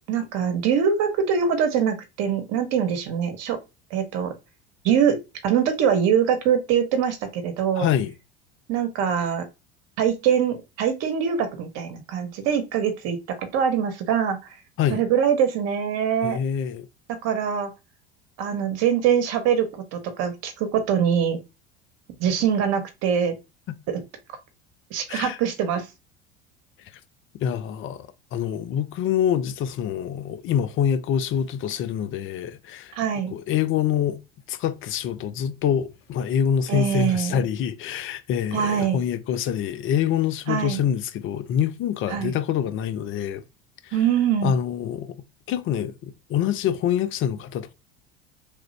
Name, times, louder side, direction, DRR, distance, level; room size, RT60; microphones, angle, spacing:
voice 1, 0.1-3.6 3.9-4.3 4.8-7.9 8.7-9.5 10.0-14.4 14.9-16.4 17.1-17.7 18.4-21.4 22.2-23.3 23.9-24.0 24.9-25.9 33.0-33.3 36.7-37.4 38.5-39.0 40.5-40.8 42.1-42.3 43.9-44.5, right 8 dB, 55° right, 1.1 m, -23 dB
voice 2, 7.8-8.1 14.8-15.0 16.2-16.9 23.7-23.8 25.1-25.4 27.4-33.0 33.3-34.2 34.5-43.4 43.8-44.0 44.4-45.1 45.5-47.7, left 9 dB, 40° left, 0.5 m, -25 dB
3.2 x 2.4 x 3.2 m
hypercardioid pair, 75°, 31 cm